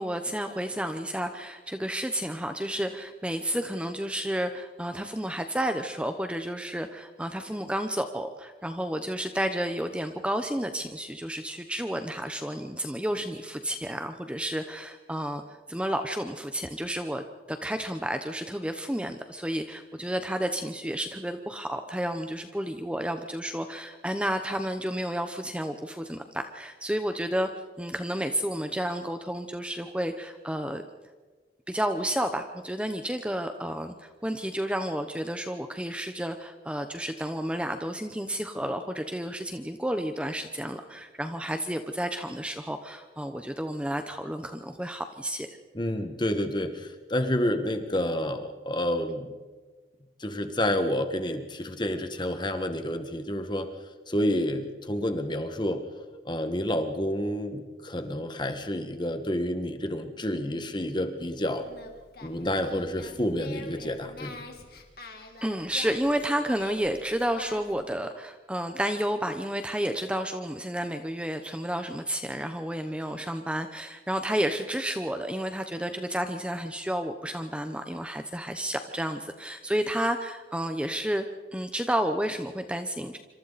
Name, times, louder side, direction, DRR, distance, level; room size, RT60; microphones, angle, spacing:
voice 1, 0.0-27.5 27.8-30.8 31.7-45.5 65.4-81.2 81.5-83.2, right 1 dB, 5° right, 7 dB, 0.9 m, -31 dB
voice 2, 45.7-49.3 50.2-53.7 54.1-55.8 56.3-61.7 62.2-64.4, left 1 dB, 25° left, 7 dB, 1.7 m, -29 dB
Singing, 61.6-67.8, left 2 dB, 60° left, 2.9 m, -45 dB
27.0 x 26.0 x 4.2 m, 1.3 s
head